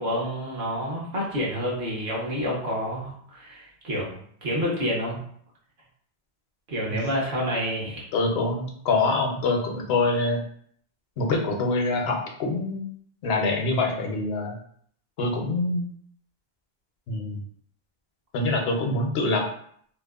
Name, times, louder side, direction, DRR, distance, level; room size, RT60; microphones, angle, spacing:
voice 1, 0.0-4.1 4.4-5.2 6.7-8.0, equal, 55° right, -5 dB, 1.0 m, -28 dB
voice 2, 8.1-10.4 11.2-12.9 13.2-14.6 15.2-15.8 17.1-17.4 18.3-19.5, left 2 dB, 75° left, 2 dB, 0.8 m, -25 dB
2.8 x 2.0 x 2.3 m, 0.62 s
omnidirectional pair, 1.1 m